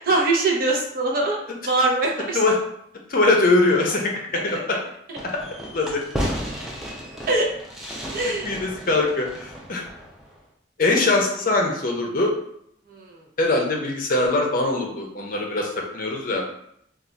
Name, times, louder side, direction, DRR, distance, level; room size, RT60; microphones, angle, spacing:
voice 1, 0.0-1.4 1.6-2.4 5.1-5.2 6.5-6.7 7.3-7.5 8.1-8.6 12.9-13.2, right 2 dB, 50° right, -1 dB, 0.6 m, -23 dB
voice 2, 3.1-4.8 5.7-6.0 8.4-9.8 10.8-12.3 13.4-16.4, left 2 dB, 50° left, 1 dB, 0.6 m, -22 dB
Fireworks, 5.2-10.4, equal, ahead, 0.4 m, -33 dB
2.4 x 2.3 x 3.9 m, 0.72 s
head